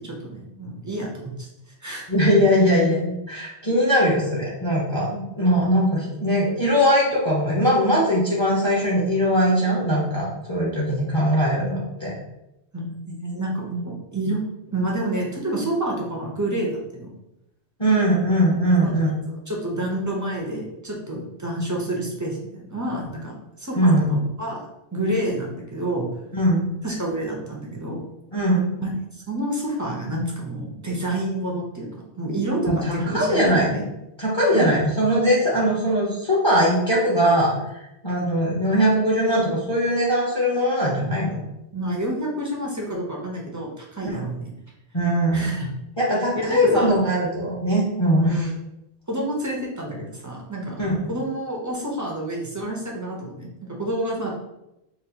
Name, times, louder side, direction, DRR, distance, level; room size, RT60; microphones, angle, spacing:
voice 1, 0.0-1.5 1.8-2.0 12.7-14.4 14.7-17.1 18.8-26.1 26.8-28.1 28.8-28.9 29.3-31.9 32.2-33.8 34.5-34.7 41.7-44.5 45.3-45.7 46.4-46.9 48.2-48.5 49.1-50.8 51.1-54.3, right 1 dB, 25° right, -2 dB, 0.4 m, -29 dB
voice 2, 2.1-12.1 17.8-19.1 23.8-24.1 26.3-26.6 28.3-28.7 32.6-33.8 34.2-41.4 44.0-44.2 44.9-45.5 46.0-48.5 50.8-51.0, equal, 30° left, -6 dB, 0.8 m, -21 dB
4.0 x 2.4 x 2.7 m, 0.89 s
omnidirectional pair, 1.1 m